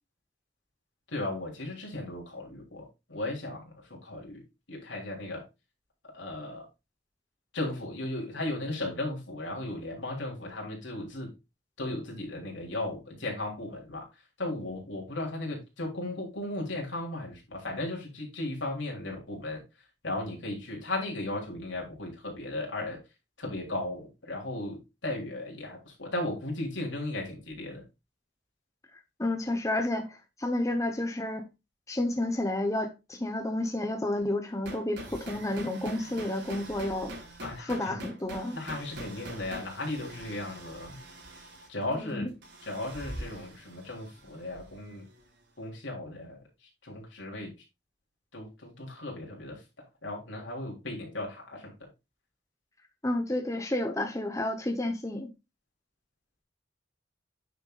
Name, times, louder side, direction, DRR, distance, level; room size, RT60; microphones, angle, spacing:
voice 1, 1.1-3.6 4.0-4.4 4.7-5.4 6.1-6.7 7.5-11.3 11.8-14.1 14.4-19.6 20.0-23.0 23.4-27.8 37.4-38.0 38.5-41.0 41.7-42.3 42.6-45.1 45.6-46.4 46.8-47.5 48.3-49.6 50.0-51.7, left 2 dB, 80° left, 3.6 m, -36 dB
voice 2, 28.9-31.5 31.9-37.1 37.6-38.6 42.0-42.3 53.0-55.3, left 1 dB, 15° left, 0.9 m, -31 dB
sound 1, 34.5-45.3, right 1 dB, 65° right, 4.4 m, -44 dB
9.3 x 6.8 x 2.4 m
head